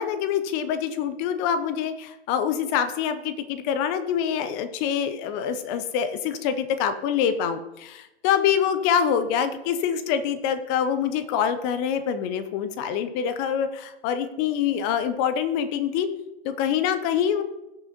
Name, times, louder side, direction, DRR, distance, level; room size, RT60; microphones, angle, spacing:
voice 1, 0.0-16.1 16.4-17.4, left 8 dB, 20° left, 10 dB, 0.7 m, -25 dB
17.0 x 6.4 x 3.0 m, 0.94 s
figure-of-eight pair, 120°, 33 cm